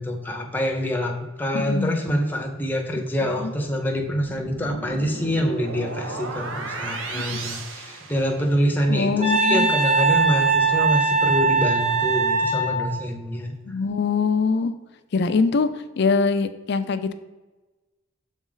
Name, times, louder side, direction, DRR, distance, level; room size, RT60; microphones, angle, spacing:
voice 1, 0.0-13.5, equal, 10° left, 2 dB, 0.7 m, -26 dB
voice 2, 1.5-2.0 3.4-3.5 7.1-7.4 8.9-9.7 13.7-14.7 15.1-15.7 16.0-17.1, left 4 dB, 60° left, 10 dB, 0.4 m, -23 dB
sound 1, 4.0-8.8, right 3 dB, 90° right, 0.8 m, -34 dB
Wind instrument woodwind instrument, 9.2-12.9, right 4 dB, 40° right, 1.3 m, -20 dB
6.2 x 4.1 x 3.9 m, 1.2 s
head